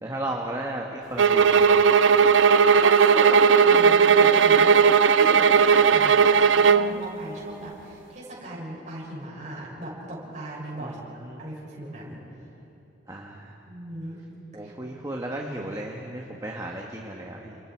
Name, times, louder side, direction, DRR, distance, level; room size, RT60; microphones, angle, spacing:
voice 1, 0.0-1.8 10.8-11.4 13.1-13.5 14.5-17.6, right 1 dB, 20° right, -1 dB, 1.5 m, -34 dB
sound 1, 1.2-6.9, right 6 dB, 90° right, 0.6 m, -17 dB
voice 2, 2.8-11.0 11.4-12.2 13.7-14.2 14.6-14.7, right 1 dB, 40° right, -5 dB, 6.8 m, -37 dB
30.0 x 28.5 x 4.7 m, 2.9 s
head